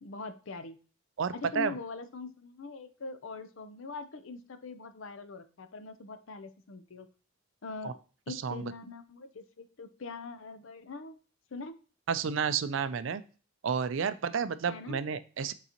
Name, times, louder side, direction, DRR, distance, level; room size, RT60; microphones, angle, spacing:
voice 1, 0.0-0.8 1.3-7.1 7.6-7.9 8.3-11.2 11.5-11.7 14.7-15.0, left 3 dB, 70° left, 10 dB, 0.6 m, -42 dB
voice 2, 1.2-1.8 7.8-7.9 8.3-8.7 12.1-13.2 13.6-15.5, right 6 dB, 65° right, 13 dB, 0.4 m, -31 dB
8.3 x 3.9 x 2.9 m, 0.37 s
head